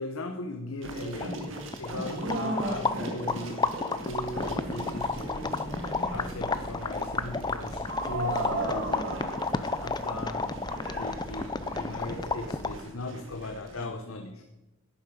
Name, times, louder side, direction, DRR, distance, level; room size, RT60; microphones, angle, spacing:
voice 1, 0.0-5.6 6.1-9.2 9.5-10.5 11.0-14.4, left 2 dB, 80° left, 5 dB, 0.9 m, -38 dB
sound 1, 0.8-13.9, right 1 dB, 65° right, 1.9 m, -37 dB
sound 2, 1.1-12.9, left 3 dB, 20° left, 0.4 m, -32 dB
sound 3, 4.1-12.8, right 1 dB, 45° right, 0.8 m, -45 dB
11.5 x 9.3 x 5.3 m, 1.0 s
head